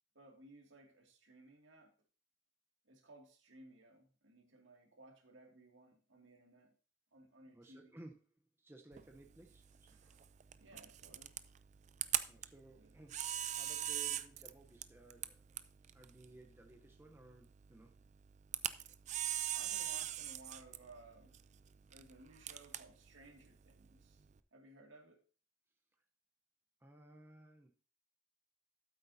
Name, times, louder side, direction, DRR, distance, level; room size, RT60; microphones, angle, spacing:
voice 1, 0.1-1.9 2.8-6.7 7.1-8.0 9.9-10.2 10.6-11.3 12.7-12.9 19.5-21.4 21.9-24.2 24.5-25.2, right 2 dB, 75° right, 2.2 m, -60 dB
voice 2, 7.5-8.1 8.6-9.9 12.3-13.2 13.5-15.6 15.9-17.9 26.8-27.7, right 2 dB, 10° right, 0.8 m, -58 dB
Camera, 8.9-24.4, right 11 dB, 35° right, 0.4 m, -43 dB
13.0 x 8.1 x 2.7 m
head